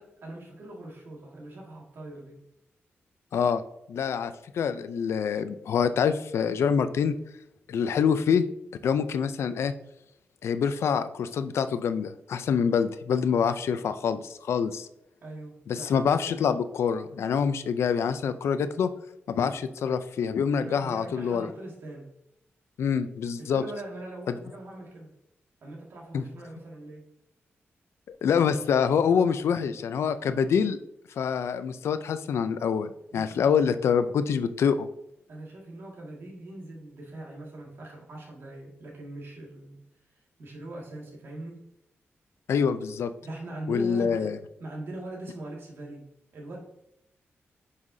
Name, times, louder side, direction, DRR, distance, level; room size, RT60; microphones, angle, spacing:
voice 1, 0.0-2.4 15.2-16.0 20.5-22.1 23.4-25.1 25.6-27.0 33.1-33.5 35.3-39.8 40.1-41.6 43.2-44.3 44.6-46.1 46.3-46.6, right 1 dB, 60° right, -3 dB, 2.0 m, -41 dB
voice 2, 3.9-7.2 7.7-8.5 8.8-9.7 10.4-14.9 15.7-18.9 19.3-21.5 22.8-23.6 26.1-26.2 28.1-30.8 31.2-34.9 42.5-43.1 43.7-44.4, left 7 dB, 90° left, 11 dB, 0.5 m, -26 dB
9.7 x 5.6 x 2.7 m, 0.80 s
wide cardioid pair, 155°, 4 cm